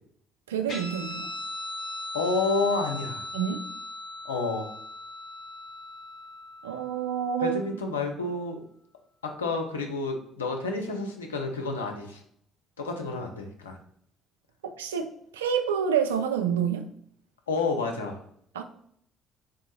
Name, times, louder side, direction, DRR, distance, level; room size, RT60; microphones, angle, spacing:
voice 1, 0.5-1.3 3.3-3.6 6.6-7.6 14.6-16.8 18.5-18.6, right 8 dB, 80° right, 6 dB, 0.3 m, -28 dB
Guitar, 0.7-7.6, left 2 dB, 50° left, 1.6 m, -39 dB
voice 2, 2.1-3.3 4.2-4.7 7.4-8.6 9.2-12.2 12.8-13.8 17.5-18.2, left 3 dB, 85° left, 3 dB, 0.5 m, -29 dB
3.6 x 2.7 x 3.9 m, 0.68 s
figure-of-eight pair, 50°, 0 cm